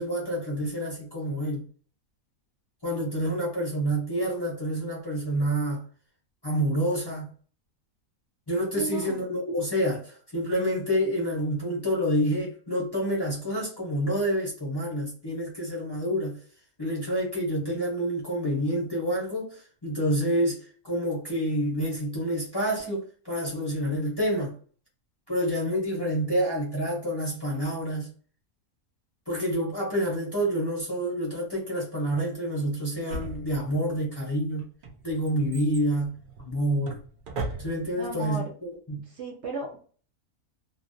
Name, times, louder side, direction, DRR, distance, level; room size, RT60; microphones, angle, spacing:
voice 1, 0.0-1.6 2.8-5.8 6.4-7.3 8.5-16.4 16.8-24.5 25.3-28.1 29.3-34.7 35.0-36.1 36.4-37.0 37.6-39.0, equal, 30° left, -4 dB, 0.5 m, -28 dB
voice 2, 8.8-9.3 37.9-38.5 39.1-39.8, right 2 dB, 65° right, 1 dB, 0.8 m, -35 dB
Drawer open or close, 33.1-34.0 34.6-38.1 38.3-38.4, right 2 dB, 85° right, 0.4 m, -37 dB
2.5 x 2.0 x 2.5 m, 0.43 s
omnidirectional pair, 1.5 m